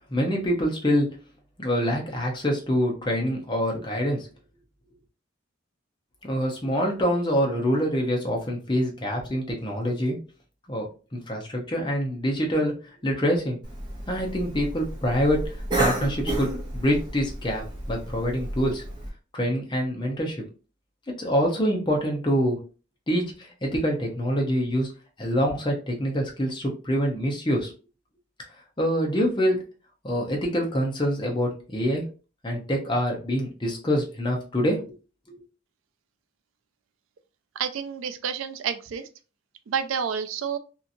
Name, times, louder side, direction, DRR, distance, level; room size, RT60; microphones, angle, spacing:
voice 1, 0.1-1.2 1.6-4.3 6.2-10.2 10.7-10.9 11.1-13.6 14.1-18.8 19.3-20.4 21.2-22.6 23.1-24.9 25.2-27.7 28.8-29.6 30.0-32.1 32.4-34.9, equal, 25° left, 0 dB, 0.7 m, -25 dB
Cough, 13.6-19.1, right 2 dB, 20° right, 0.7 m, -31 dB
voice 2, 37.5-39.1 39.7-40.6, right 7 dB, 75° right, 11 dB, 0.3 m, -29 dB
2.8 x 2.6 x 2.5 m, 0.34 s
head